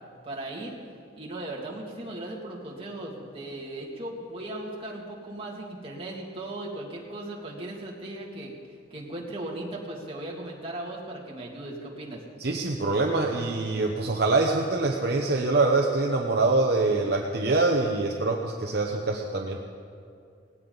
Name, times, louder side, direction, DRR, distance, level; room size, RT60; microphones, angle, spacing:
voice 1, 0.2-0.8 1.1-8.5 8.9-12.2, right 1 dB, 30° right, -4 dB, 2.6 m, -37 dB
voice 2, 12.4-19.6, right 3 dB, 60° right, 1 dB, 1.0 m, -24 dB
18.5 x 16.5 x 4.1 m, 2.3 s
head